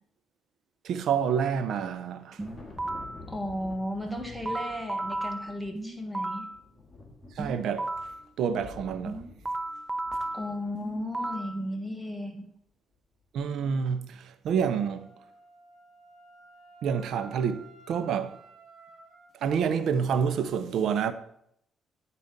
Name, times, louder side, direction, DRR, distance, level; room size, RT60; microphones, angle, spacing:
voice 1, 0.8-2.4 7.4-7.9 8.4-9.2 13.3-15.1 16.8-18.4 19.4-21.1, right 7 dB, 75° right, 0.7 m, -28 dB
Thunder, 1.9-11.2, left 3 dB, 20° left, 2.0 m, -49 dB
sound 1, 2.4-3.2 4.1-6.6 7.4-8.2 9.1-11.6, right 2 dB, 20° right, 0.6 m, -34 dB
voice 2, 3.3-6.5 10.3-12.4, left 1 dB, ahead, 1.6 m, -34 dB
Wind instrument woodwind instrument, 14.6-19.3, right 3 dB, 45° right, 2.3 m, -53 dB
9.4 x 4.2 x 5.2 m
cardioid pair, 90°, 0 cm